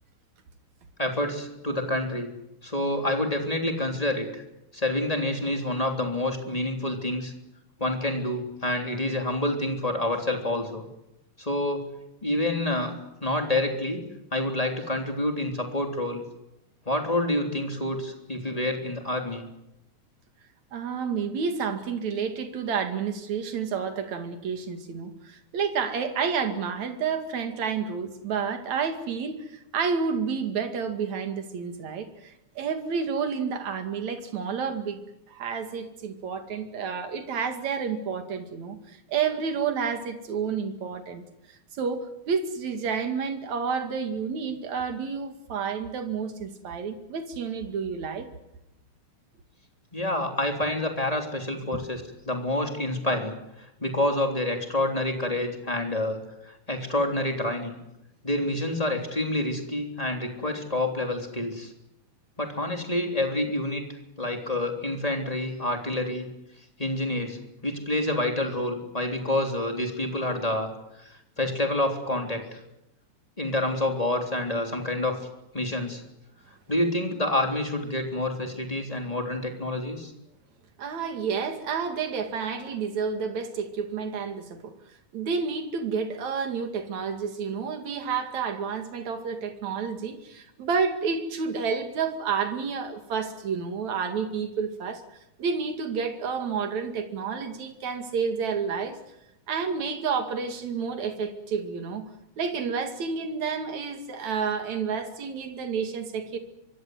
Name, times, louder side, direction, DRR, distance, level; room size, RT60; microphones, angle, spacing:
voice 1, 1.0-2.3 2.6-4.4 4.7-7.3 7.8-10.9 11.4-11.8 12.2-12.9 13.2-14.0 14.3-16.2 16.8-19.5 49.9-56.2 56.4-57.8 58.2-61.7 62.4-63.8 64.2-66.3 66.8-70.7 71.0-72.6 73.4-75.1 75.5-76.0 76.7-80.1, left 1 dB, 10° left, 3 dB, 3.2 m, -28 dB
voice 2, 20.7-35.0 35.3-41.2 41.8-48.3 80.8-84.8 85.1-95.0 95.4-99.0 99.5-102.1 102.4-106.4, right 6 dB, 65° right, 7 dB, 3.5 m, -30 dB
24.5 x 24.0 x 8.0 m, 0.88 s
omnidirectional pair, 3.5 m